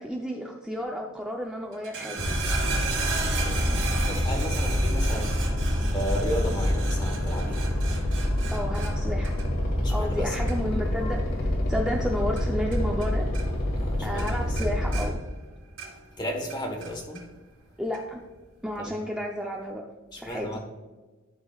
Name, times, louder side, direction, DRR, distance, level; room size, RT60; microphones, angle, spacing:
voice 1, 0.0-2.3 8.5-9.4 9.9-13.3 14.0-15.2 17.8-18.2 18.6-19.8 20.2-20.6, equal, 5° right, -1 dB, 0.6 m, -32 dB
sound 1, 1.7-13.1 13.3-13.9 14.2-16.1 16.5-17.2 17.9-18.0, right 4 dB, 65° right, 2.6 m, -36 dB
sound 2, 2.2-15.1, left 1 dB, 70° left, 1.7 m, -27 dB
voice 2, 3.3-5.5 5.9-7.7 9.8-10.5 13.8-14.6 16.2-17.3 18.8-19.0 20.1-20.6, equal, 20° left, 3 dB, 1.4 m, -34 dB
12.0 x 6.1 x 2.4 m, 1.2 s
head